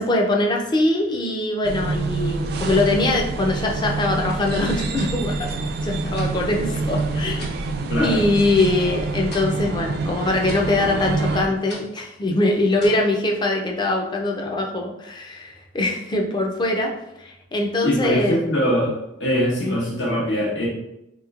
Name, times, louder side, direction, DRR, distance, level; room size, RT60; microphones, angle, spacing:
voice 1, 0.0-5.5 5.8-7.4 8.0-16.9 17.2-18.4 19.6-19.8, left 2 dB, 25° left, 1 dB, 0.4 m, -22 dB
sound 1, 1.6-11.5, right 3 dB, 55° right, 0.3 m, -26 dB
sound 2, 4.3-7.6 8.0-8.6 8.9-13.1, left 1 dB, 65° left, 1.0 m, -43 dB
voice 2, 7.9-8.2 17.8-20.7, equal, 85° left, -5 dB, 1.2 m, -22 dB
3.3 x 2.9 x 2.4 m, 0.86 s
head